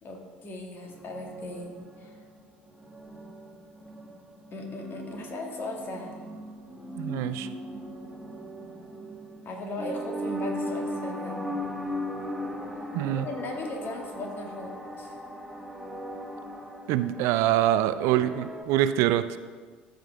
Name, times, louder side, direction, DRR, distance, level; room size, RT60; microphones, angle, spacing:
voice 1, 0.0-2.1 4.5-6.1 9.4-11.4 13.0-15.2, left 2 dB, 40° left, 2 dB, 1.8 m, -37 dB
sound 1, 0.8-18.6, equal, 5° right, 1.1 m, -38 dB
voice 2, 7.0-7.5 12.9-13.3 16.9-19.3, right 12 dB, 60° right, 13 dB, 0.4 m, -24 dB
13.5 x 5.2 x 3.4 m, 1.5 s
hypercardioid pair, 65°, 5 cm